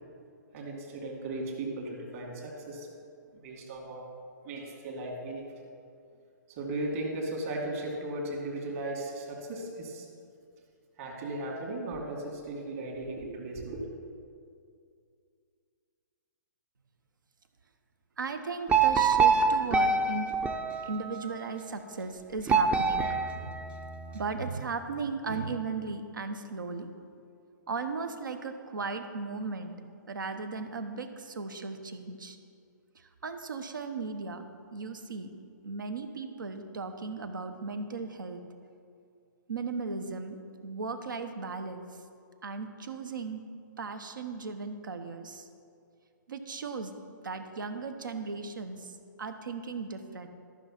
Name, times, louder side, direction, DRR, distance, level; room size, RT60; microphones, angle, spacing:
voice 1, 0.5-2.9 3.3-4.0 4.4-5.4 6.5-10.1 11.0-13.8, right 2 dB, 45° right, 0 dB, 2.4 m, -36 dB
voice 2, 18.2-20.3 20.8-23.5 24.1-26.9 27.7-29.7 30.1-32.4 32.9-34.4 34.7-35.3 35.6-38.4 39.5-41.8 42.4-43.4 43.8-45.5 46.3-47.0 47.2-50.3, right 4 dB, 80° right, 8 dB, 1.0 m, -36 dB
sound 1, 18.7-21.4 22.5-24.2, right 5 dB, 10° right, 0.5 m, -26 dB
13.5 x 5.9 x 5.9 m, 2.4 s
hypercardioid pair, 140°, 10 cm